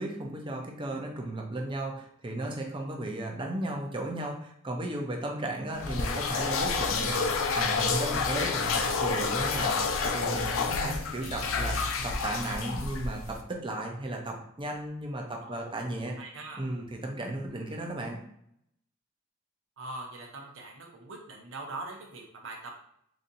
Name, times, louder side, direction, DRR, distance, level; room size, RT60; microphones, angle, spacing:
voice 1, 0.0-9.8 10.0-11.8 12.0-16.1 16.6-18.2, right 1 dB, 25° right, 1 dB, 0.6 m, -35 dB
sound 1, 5.8-13.4, left 4 dB, 70° left, 0.4 m, -29 dB
voice 2, 15.4-15.7 16.2-16.6 19.8-22.6, right 2 dB, 65° right, 0 dB, 0.7 m, -42 dB
4.1 x 2.7 x 2.6 m, 0.71 s
head